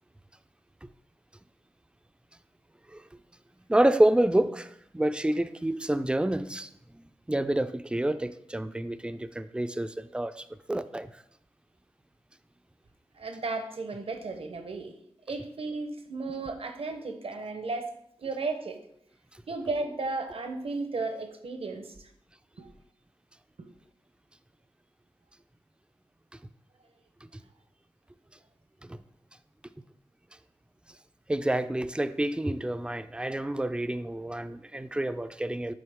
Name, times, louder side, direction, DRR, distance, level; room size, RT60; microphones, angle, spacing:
voice 1, 3.7-11.1 28.8-29.0 31.3-35.7, right 1 dB, 10° right, 0.4 m, -28 dB
voice 2, 13.2-14.9 15.3-17.9 18.2-18.8 19.5-22.1 22.6-22.7 23.6-23.7, right 3 dB, 70° right, 0.8 m, -34 dB
8.5 x 3.7 x 3.5 m
wide cardioid pair, 65°, 10 cm